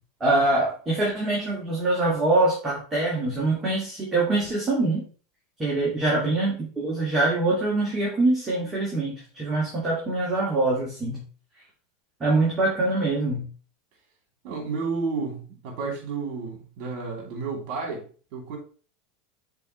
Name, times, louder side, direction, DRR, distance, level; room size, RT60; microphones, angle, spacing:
voice 1, 0.2-5.1 5.6-11.2 12.2-13.5, right 2 dB, 15° right, 2.3 m, -24 dB
voice 2, 6.0-6.3 14.4-18.0 18.3-18.6, right 4 dB, 55° right, 2.9 m, -31 dB
6.9 x 4.5 x 3.1 m
supercardioid pair, 130°, 0 cm